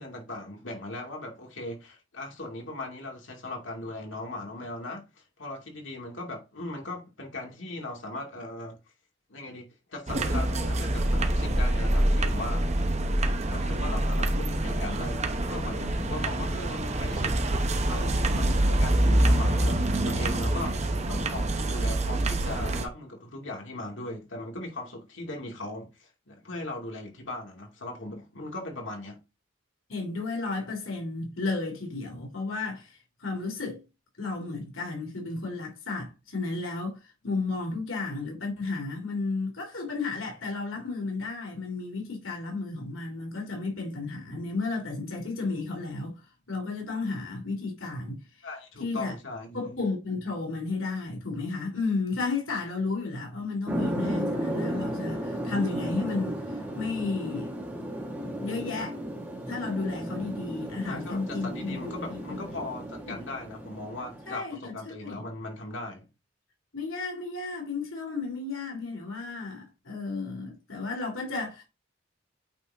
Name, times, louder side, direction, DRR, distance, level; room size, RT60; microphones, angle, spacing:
voice 1, 0.0-8.8 9.3-12.7 13.5-17.6 17.8-20.8 21.1-29.2 48.4-49.8 60.8-66.1, left 2 dB, 70° left, 2.5 m, -39 dB
sound 1, 10.1-22.9, right 1 dB, 35° right, 1.0 m, -26 dB
voice 2, 29.9-33.8 34.2-46.2 46.5-48.2 48.8-49.1 49.5-57.5 58.4-59.0 59.5-62.4 63.1-63.2 64.3-65.2 66.7-71.6, left 3 dB, 85° left, 2.9 m, -33 dB
sound 2, 53.7-64.3, right 1 dB, 10° right, 1.9 m, -34 dB
8.7 x 4.1 x 3.6 m
head